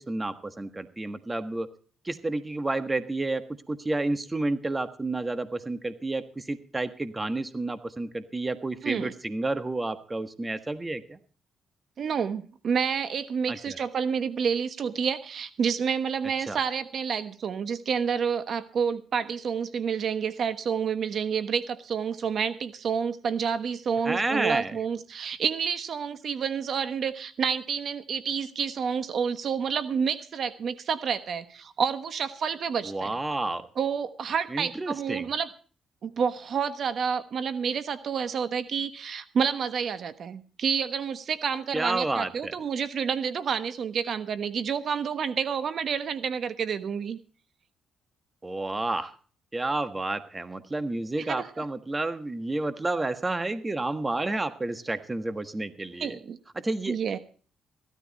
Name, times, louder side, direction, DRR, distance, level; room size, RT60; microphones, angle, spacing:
voice 1, 0.0-1.7 2.0-11.2 13.5-13.8 16.4-16.6 24.0-24.8 32.8-33.6 34.5-35.3 41.7-42.5 48.4-49.1 49.5-56.2 56.5-57.0, right 2 dB, 20° right, 10 dB, 1.5 m, -30 dB
voice 2, 12.0-33.1 33.8-35.5 36.0-47.2 51.2-51.5 56.0-56.4 56.9-57.2, right 6 dB, 55° right, 11 dB, 1.2 m, -29 dB
16.0 x 13.0 x 4.2 m, 0.41 s
cardioid pair, 90°, 0 cm